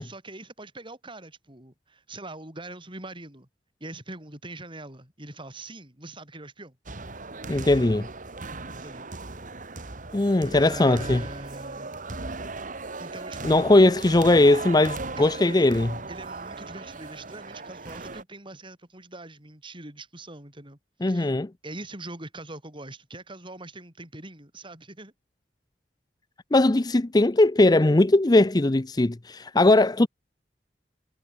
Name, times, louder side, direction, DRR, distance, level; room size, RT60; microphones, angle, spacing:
voice 1, 0.0-3.5 3.8-6.8 8.7-9.1 10.5-12.0 13.0-13.7 15.2-15.7 16.1-21.3 21.6-25.1, right 2 dB, 30° right, 6.4 m, -42 dB
sound 1, 6.9-18.2, right 3 dB, 50° right, 2.1 m, -37 dB
voice 2, 7.5-8.1 10.1-11.2 13.4-15.9 21.0-21.5 26.5-30.1, left 2 dB, 25° left, 0.6 m, -19 dB
head